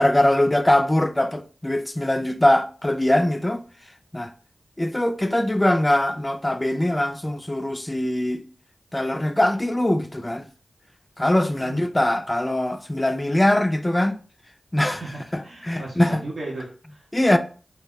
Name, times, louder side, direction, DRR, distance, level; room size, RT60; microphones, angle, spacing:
voice 1, 0.0-3.6 4.1-4.3 4.8-8.4 8.9-10.5 11.2-14.2 14.7-15.0 15.3-16.2 17.1-17.4, left 1 dB, 20° left, 0.3 m, -22 dB
voice 2, 11.5-11.8 14.9-17.1, right 2 dB, 75° right, 0.7 m, -36 dB
2.2 x 2.0 x 3.6 m
cardioid pair, 45°, 0 cm